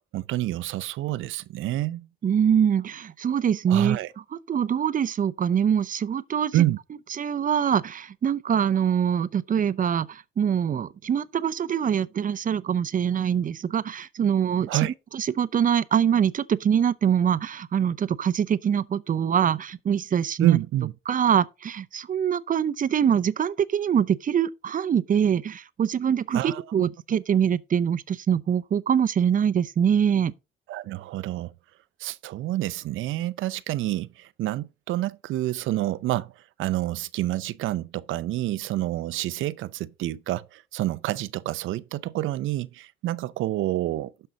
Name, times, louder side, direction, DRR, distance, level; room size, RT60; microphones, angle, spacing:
voice 1, 0.1-2.1 3.7-4.1 6.5-6.8 14.7-14.9 20.4-20.9 26.3-26.9 30.7-31.5 32.0-44.3, right 15 dB, 80° right, 0.6 m, -28 dB
voice 2, 2.2-4.0 4.5-6.6 7.2-14.7 15.1-20.6 21.1-30.3, right 8 dB, 45° right, 0.6 m, -24 dB
12.0 x 5.5 x 3.9 m
cardioid pair, 90°, 20 cm